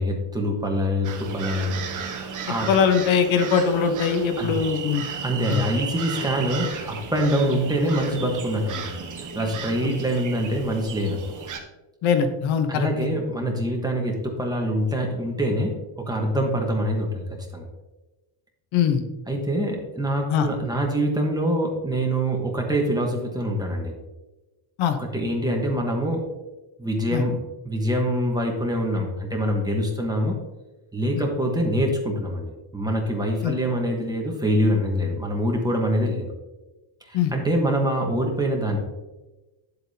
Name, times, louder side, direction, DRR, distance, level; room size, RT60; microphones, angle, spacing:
voice 1, 0.0-1.9 2.5-2.7 4.4-4.5 5.2-8.9 9.2-11.2 12.7-17.2 17.5-17.7 19.3-23.9 25.0-26.2 26.8-30.4 30.9-36.3 37.1-38.8, equal, 10° right, 0 dB, 1.2 m, -25 dB
sound 1, 1.0-11.6, right 6 dB, 40° right, 1.2 m, -34 dB
voice 2, 2.7-5.0 5.5-5.6 7.5-7.6 9.8-10.0 12.0-12.9 18.7-19.0 20.3-20.5 24.8-25.0 27.1-27.2 31.1-31.2 33.4-33.5 37.1-37.3, left 7 dB, 65° left, 7 dB, 1.1 m, -21 dB
10.0 x 8.0 x 2.8 m, 1.1 s
cardioid pair, 160°, 49 cm